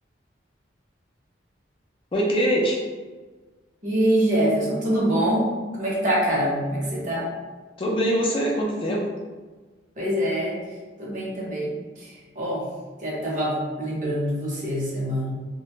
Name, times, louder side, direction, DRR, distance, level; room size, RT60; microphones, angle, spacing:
voice 1, 2.1-2.8 7.8-9.1, equal, 30° left, -2 dB, 0.4 m, -23 dB
voice 2, 3.8-5.5 5.7-7.3 10.0-10.6 11.0-12.6 13.0-15.3, equal, 45° right, -5 dB, 0.8 m, -24 dB
2.4 x 2.2 x 2.9 m, 1.3 s
head